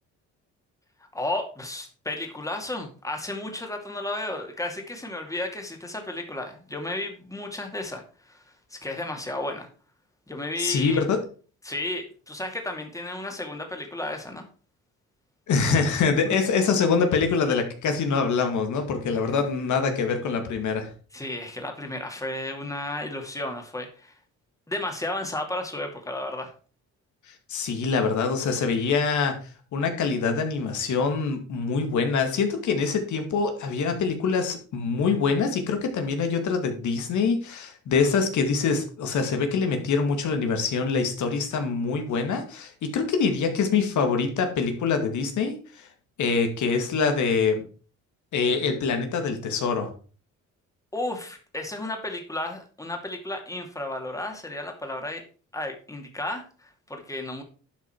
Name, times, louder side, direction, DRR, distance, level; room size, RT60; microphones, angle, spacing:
voice 1, 1.0-9.7 10.3-11.0 11.6-14.4 16.2-16.4 19.1-19.2 21.1-24.2 24.7-26.5 50.9-55.2 55.5-57.4, left 1 dB, 10° left, 3 dB, 2.5 m, -33 dB
voice 2, 10.6-11.2 15.5-20.9 27.5-29.4 29.7-45.9 46.2-47.6 48.3-49.9, left 5 dB, 75° left, 6 dB, 2.1 m, -24 dB
11.5 x 5.6 x 4.6 m, 0.39 s
cardioid pair, 90°, 30 cm